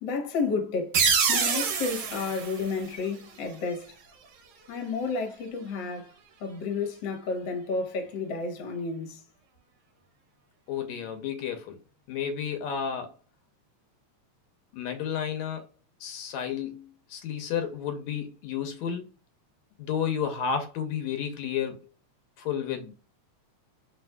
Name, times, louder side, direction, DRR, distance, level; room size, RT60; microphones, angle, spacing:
voice 1, 0.0-3.9 4.7-6.1 6.4-9.2, left 4 dB, 55° left, 1.4 m, -31 dB
sound 1, 0.9-3.5, right 6 dB, 65° right, 1.4 m, -27 dB
voice 2, 10.7-11.8 12.1-13.1 14.7-15.7 16.0-19.1 19.8-21.8 22.4-22.9, left 8 dB, 75° left, 1.9 m, -31 dB
4.4 x 4.3 x 2.2 m
omnidirectional pair, 3.3 m